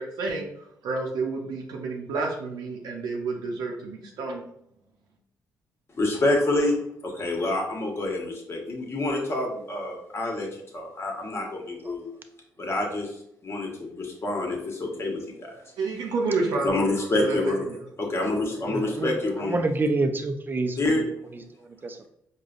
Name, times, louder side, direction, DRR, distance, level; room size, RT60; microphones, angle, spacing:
voice 1, 0.0-4.4 15.8-16.8 17.1-17.9, right 3 dB, 80° right, -1 dB, 0.6 m, -30 dB
voice 2, 6.0-6.8 7.0-10.5 10.7-12.1 12.6-13.1 13.4-15.5 16.6-17.6 18.0-19.6 20.8-21.0, left 2 dB, 40° left, 0 dB, 1.1 m, -27 dB
voice 3, 18.7-19.1 19.4-22.1, right 2 dB, 30° right, 7 dB, 0.5 m, -28 dB
4.8 x 2.2 x 2.5 m, 0.75 s
cardioid pair, 70°, 7 cm